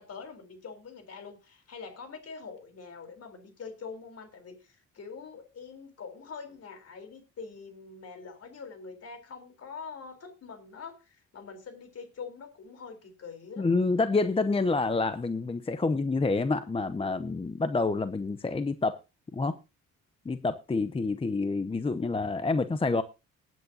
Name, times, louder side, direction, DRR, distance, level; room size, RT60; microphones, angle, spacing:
voice 1, 0.0-4.6 4.9-13.7, left 5 dB, 55° left, 3.9 m, -44 dB
voice 2, 13.6-19.0 19.3-19.6 20.3-23.0, left 3 dB, 20° left, 0.7 m, -28 dB
19.0 x 9.2 x 2.8 m
cardioid pair, 90°, 30 cm